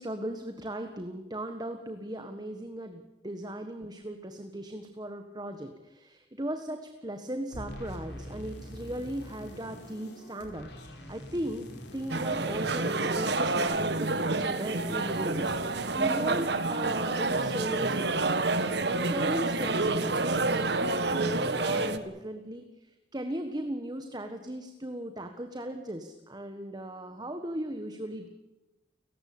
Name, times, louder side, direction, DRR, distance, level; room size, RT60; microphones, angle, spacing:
voice 1, 0.0-10.7 11.1-28.3, right 1 dB, 20° right, 7 dB, 1.5 m, -37 dB
sound 1, 7.5-13.7, equal, 65° left, 5.2 m, -45 dB
sound 2, 12.1-22.0, right 3 dB, 60° right, 1.6 m, -28 dB
30.0 x 15.5 x 8.7 m, 1.1 s
head